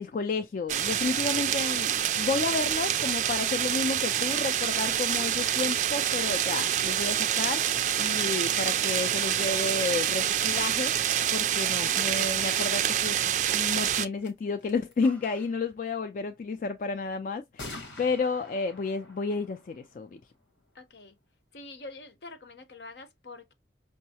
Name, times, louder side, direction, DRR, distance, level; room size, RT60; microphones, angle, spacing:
voice 1, 0.0-20.2, left 4 dB, 45° left, 0.3 m, -31 dB
sound 1, 0.7-14.1, right 10 dB, 40° right, 0.3 m, -27 dB
sound 2, 14.2-14.3 14.6-15.1 17.6-21.0, left 2 dB, 90° left, 1.2 m, -46 dB
sound 3, 15.0-15.6, equal, 10° left, 0.7 m, -52 dB
voice 2, 20.7-21.2 21.5-23.5, left 3 dB, 70° left, 0.8 m, -45 dB
5.4 x 2.0 x 2.7 m
head